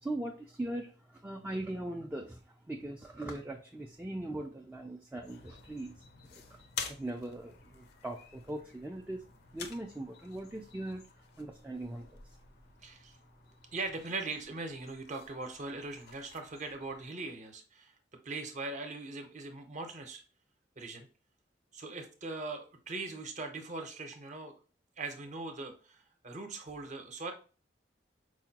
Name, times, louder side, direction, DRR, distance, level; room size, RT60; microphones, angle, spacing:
voice 1, 0.0-6.0 6.3-6.6 6.9-9.3 9.5-11.0 11.4-12.4, right 1 dB, 10° right, 1 dB, 0.3 m, -40 dB
sound 1, 5.2-17.1, left 6 dB, 65° left, 0.5 m, -49 dB
voice 2, 12.8-13.2 13.7-17.9 18.2-20.2 20.8-21.1 21.7-24.5 25.0-27.3, right 3 dB, 45° right, 4 dB, 0.7 m, -40 dB
4.7 x 2.2 x 2.8 m, 0.36 s
head